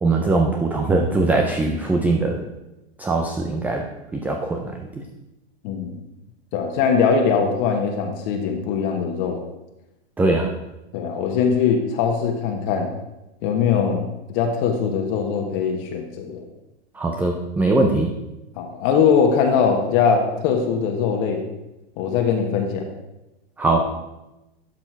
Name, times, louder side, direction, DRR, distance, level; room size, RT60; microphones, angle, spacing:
voice 1, 0.0-2.5 3.0-3.8 4.1-4.9 10.2-10.5 17.0-18.1 23.6-23.9, right 2 dB, 5° right, 2 dB, 0.3 m, -21 dB
voice 2, 5.6-6.0 6.5-9.4 10.9-12.9 13.4-14.0 14.3-16.4 18.6-21.4 22.0-22.8, left 6 dB, 45° left, 2 dB, 1.3 m, -21 dB
12.0 x 4.4 x 4.5 m, 0.97 s
hypercardioid pair, 130°, 34 cm